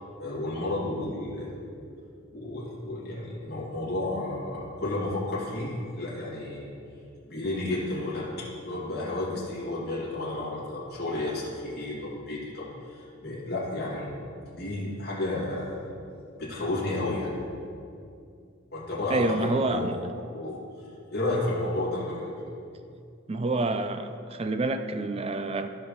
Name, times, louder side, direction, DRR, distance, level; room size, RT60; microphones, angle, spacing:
voice 1, 0.2-1.6 2.3-6.7 7.3-8.3 8.6-14.1 14.5-15.7 16.4-17.3 18.7-19.9 20.3-20.6 21.1-22.3, left 2 dB, 50° left, -8 dB, 2.4 m, -32 dB
voice 2, 19.1-20.0 23.3-25.7, right 2 dB, 30° right, 9 dB, 0.4 m, -28 dB
15.0 x 5.7 x 3.1 m, 2.5 s
head